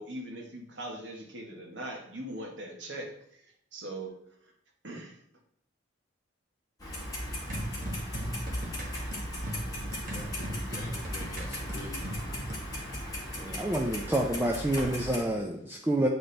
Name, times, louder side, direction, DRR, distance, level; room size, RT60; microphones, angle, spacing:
voice 1, 0.0-3.4 3.7-4.1 4.8-5.2, right 1 dB, 65° right, 1 dB, 1.3 m, -40 dB
Clock, 6.8-15.2, equal, 20° left, 1.9 m, -37 dB
sound 1, 7.5-12.6, equal, 45° right, 1.3 m, -39 dB
voice 2, 10.0-12.1 15.6-15.9, left 1 dB, 60° left, 0 dB, 1.9 m, -48 dB
voice 3, 13.4-16.1, right 1 dB, 10° right, 1 dB, 0.4 m, -28 dB
9.0 x 4.2 x 3.3 m, 0.72 s
head